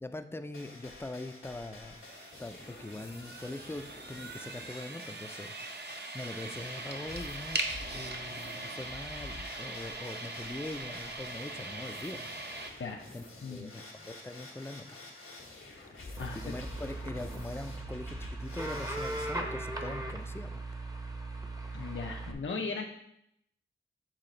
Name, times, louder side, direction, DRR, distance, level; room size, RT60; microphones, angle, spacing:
voice 1, 0.0-2.0 2.4-7.6 7.9-12.3 13.1-13.2 13.5-15.0 16.3-20.5, left 2 dB, 10° left, 9 dB, 0.4 m, -42 dB
sound 1, 0.5-19.3, left 2 dB, 90° left, 1.3 m, -49 dB
sound 2, 2.0-12.7, right 2 dB, 55° right, 0.8 m, -41 dB
voice 2, 13.4-13.7 16.2-16.5 21.7-22.8, left 4 dB, 70° left, 1 dB, 0.5 m, -37 dB
sound 3, 16.2-22.3, right 2 dB, 15° right, 0.7 m, -38 dB
7.5 x 4.0 x 3.9 m, 0.77 s
wide cardioid pair, 70°, 21 cm